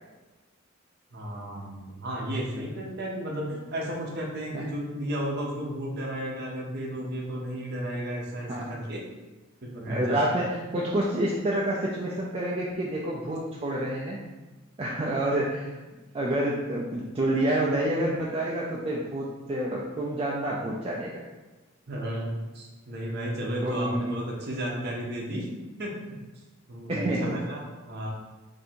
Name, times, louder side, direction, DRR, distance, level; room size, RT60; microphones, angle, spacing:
voice 1, 1.1-9.0 9.6-10.2 21.9-25.5 25.8-26.0 26.7-27.6 27.9-28.1, equal, 50° right, -1 dB, 0.7 m, -33 dB
voice 2, 9.9-14.2 14.8-15.8 16.1-21.2 23.6-24.1 26.9-27.4, right 1 dB, 25° right, -4 dB, 0.3 m, -28 dB
2.7 x 2.6 x 4.3 m, 1.2 s
head